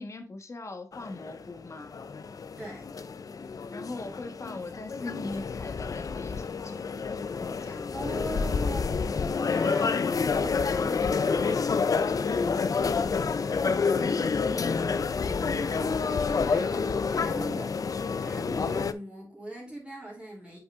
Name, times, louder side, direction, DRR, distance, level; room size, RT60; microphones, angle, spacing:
voice 1, 0.0-1.9 3.7-6.8 7.4-8.0 13.4-14.5 15.2-15.8, left 2 dB, 50° left, 1.3 m, -40 dB
sound 1, 0.9-18.9, left 5 dB, 70° left, 0.5 m, -28 dB
voice 2, 2.6-2.9 7.5-11.7 15.1-17.8 18.2-20.6, right 1 dB, 15° right, 2.7 m, -42 dB
8.2 x 5.4 x 2.4 m
wide cardioid pair, 85°, 6 cm